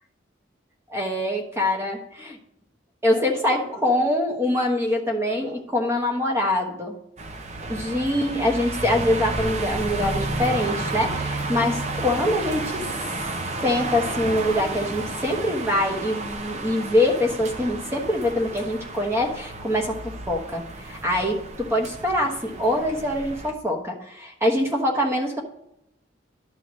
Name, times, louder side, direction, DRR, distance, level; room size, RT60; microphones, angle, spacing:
voice 1, 0.9-2.4 3.0-6.9 7.7-12.8 13.6-20.0 20.3-25.4, left 1 dB, 15° right, 2 dB, 1.2 m, -24 dB
sound 1, 7.2-23.5, right 2 dB, 35° right, 0.6 m, -31 dB
11.5 x 7.3 x 3.1 m, 0.82 s
head